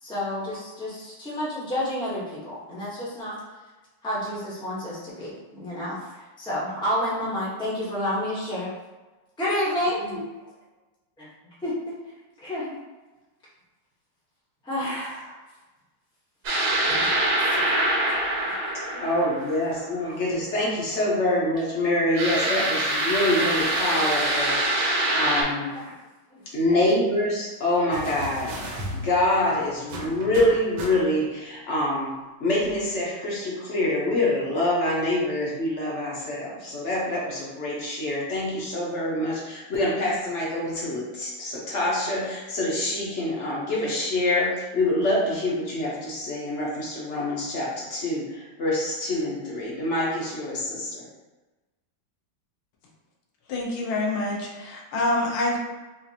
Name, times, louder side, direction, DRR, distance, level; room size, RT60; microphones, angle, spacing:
voice 1, 0.0-3.3 4.0-8.7 9.4-10.2 11.6-11.7 12.4-12.8 14.6-15.3 16.9-17.1 17.4-17.6 18.9-19.0 20.0-20.1 22.4-22.5 24.8-24.9 25.4-25.8 26.3-26.4 26.7-26.8, left 1 dB, 5° left, -7 dB, 0.4 m, -30 dB
sound 1, 16.4-19.9 22.2-25.4, right 1 dB, 60° right, 1.5 m, -24 dB
voice 2, 19.0-24.6 25.1-25.7 26.5-28.6 28.9-51.1, left 1 dB, 55° left, -5 dB, 0.8 m, -26 dB
sound 2, 27.9-31.4 32.6-32.7, right 1 dB, 80° right, 1.5 m, -36 dB
voice 3, 53.5-55.6, left 2 dB, 85° left, -2 dB, 1.6 m, -26 dB
4.3 x 2.5 x 2.8 m, 1.2 s
omnidirectional pair, 2.2 m